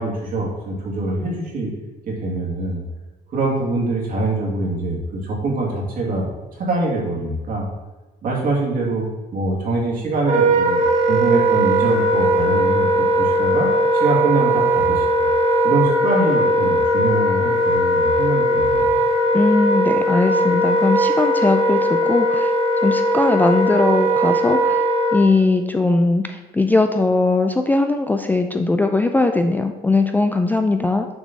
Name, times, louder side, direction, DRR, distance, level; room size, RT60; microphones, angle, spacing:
voice 1, 0.0-1.7 2.1-2.8 3.3-6.3 6.6-7.7 8.2-9.1 9.3-10.8 11.1-15.1 15.6-18.9, right 2 dB, 55° right, -3 dB, 2.1 m, -24 dB
Wind instrument woodwind instrument, 10.2-25.2, right 1 dB, 40° right, 1.5 m, -18 dB
voice 2, 19.3-22.5 22.8-24.8 25.1-31.1, left 3 dB, 10° left, 6 dB, 0.3 m, -19 dB
6.9 x 3.2 x 5.2 m, 1.2 s
cardioid pair, 110°, 17 cm